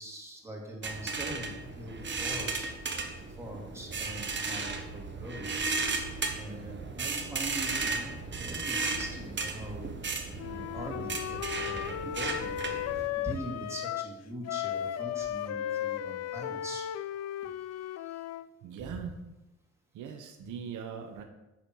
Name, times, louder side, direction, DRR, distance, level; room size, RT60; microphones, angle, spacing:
voice 1, 0.0-2.7 3.4-5.5 6.3-9.9 10.3-16.9 18.0-18.1 18.8-19.1 20.4-20.5, equal, 10° right, -1 dB, 2.6 m, -42 dB
sound 1, 0.8-13.1, right 4 dB, 40° right, 1.2 m, -35 dB
Wind instrument woodwind instrument, 10.4-14.1 14.4-18.5, left 11 dB, 60° left, 0.4 m, -35 dB
voice 2, 18.6-19.2 19.9-21.2, right 7 dB, 80° right, 6 dB, 0.9 m, -40 dB
8.6 x 4.3 x 6.1 m, 0.99 s
cardioid pair, 90°, 30 cm